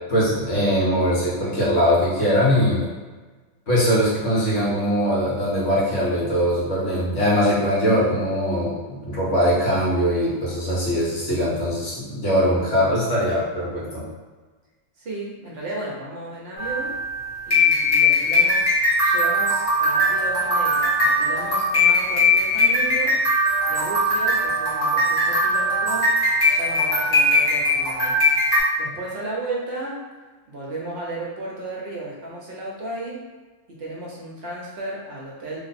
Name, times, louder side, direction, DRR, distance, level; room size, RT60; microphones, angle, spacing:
voice 1, 0.1-2.8 3.7-14.0, equal, 70° left, -7 dB, 1.5 m, -21 dB
voice 2, 15.0-17.0 17.5-18.7 19.0-23.2 23.7-28.2 28.8-30.1 30.5-33.2 33.7-35.6, right 2 dB, 60° right, -4 dB, 0.9 m, -34 dB
sound 1, 16.6-28.6, left 1 dB, 85° left, 1.5 m, -20 dB
3.1 x 2.1 x 4.1 m, 1.3 s
omnidirectional pair, 1.3 m